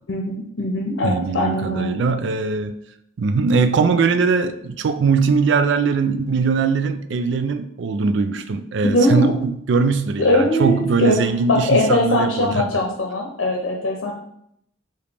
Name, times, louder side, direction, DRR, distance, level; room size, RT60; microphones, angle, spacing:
voice 1, 0.1-1.9 8.8-9.3 10.2-11.2 11.5-14.1, left 1 dB, 85° left, 1 dB, 0.7 m, -20 dB
voice 2, 1.0-2.7 3.2-12.7, right 4 dB, 70° right, 9 dB, 0.4 m, -20 dB
4.9 x 2.8 x 3.3 m, 0.74 s
head